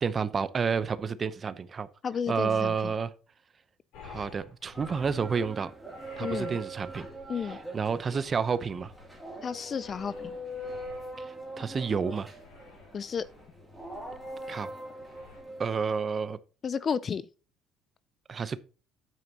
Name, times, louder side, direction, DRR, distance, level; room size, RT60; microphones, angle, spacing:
voice 1, 0.0-1.9 2.3-3.1 4.0-5.7 6.2-7.1 7.4-8.9 11.2-12.3 14.5-14.7 15.6-16.4 18.3-18.6, right 5 dB, 25° right, 0.7 m, -30 dB
voice 2, 2.0-2.9 6.2-6.6 7.3-7.6 9.4-10.4 12.9-13.2 16.6-17.2, left 6 dB, 25° left, 0.4 m, -32 dB
sound 1, 3.9-15.4, left 5 dB, 70° left, 4.5 m, -53 dB
sound 2, 4.7-15.8, right 1 dB, ahead, 2.6 m, -42 dB
9.3 x 8.9 x 2.8 m
cardioid pair, 170°, 0 cm